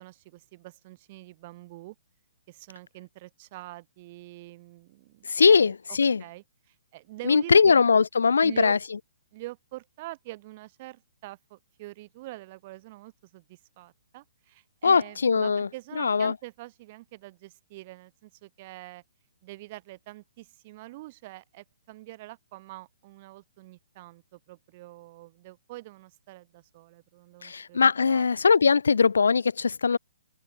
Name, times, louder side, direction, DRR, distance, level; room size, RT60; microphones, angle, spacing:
voice 1, 0.0-2.0 2.5-7.8 8.4-8.8 9.3-19.0 19.4-28.3, right 19 dB, 35° right, 5.9 m, -45 dB
voice 2, 5.3-6.2 7.3-8.8 14.8-15.7 16.0-16.3 27.4-30.0, left 5 dB, 85° left, 0.4 m, -21 dB
hypercardioid pair, 150°, 0 cm